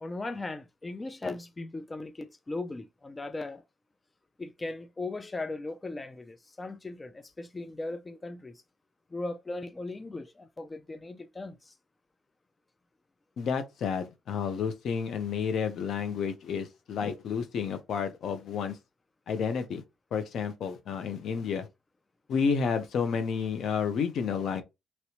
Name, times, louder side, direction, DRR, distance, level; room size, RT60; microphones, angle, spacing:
voice 1, 0.0-3.6 4.4-8.6 9.1-11.7, left 2 dB, 20° left, 0.4 m, -38 dB
voice 2, 13.4-18.8 19.3-19.8 20.1-21.7 22.3-24.6, left 6 dB, 70° left, 0.7 m, -30 dB
3.0 x 2.9 x 2.9 m
cardioid pair, 90°, 0 cm